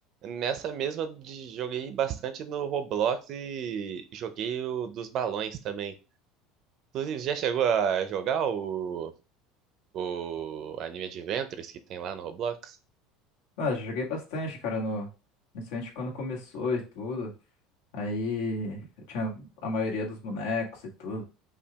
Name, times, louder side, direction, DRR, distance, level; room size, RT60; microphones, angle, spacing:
voice 1, 0.2-5.9 6.9-9.1 9.9-12.8, right 8 dB, 40° right, 10 dB, 0.5 m, -31 dB
voice 2, 13.6-15.1 15.5-17.3 17.9-21.2, left 3 dB, 75° left, -1 dB, 1.7 m, -32 dB
5.6 x 2.4 x 3.5 m, 0.31 s
cardioid pair, 165°, 0 cm